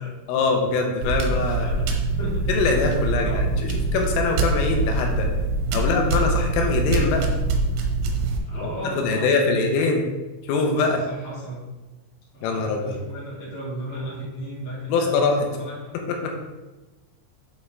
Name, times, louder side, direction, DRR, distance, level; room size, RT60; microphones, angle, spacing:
voice 1, 0.3-1.7 2.5-5.3 5.7-7.3 8.5-10.0 10.5-11.0 12.4-13.0 14.9-15.5 16.0-16.3, left 4 dB, 85° left, 2 dB, 3.4 m, -23 dB
sound 1, 1.0-8.4, right 3 dB, 90° right, 3.3 m, -24 dB
voice 2, 1.5-1.9 2.2-2.5 3.1-3.5 5.8-6.0 8.4-9.9 11.1-11.6 12.3-16.0, equal, 25° left, -8 dB, 1.3 m, -35 dB
7.9 x 5.6 x 3.5 m, 1.1 s
omnidirectional pair, 5.8 m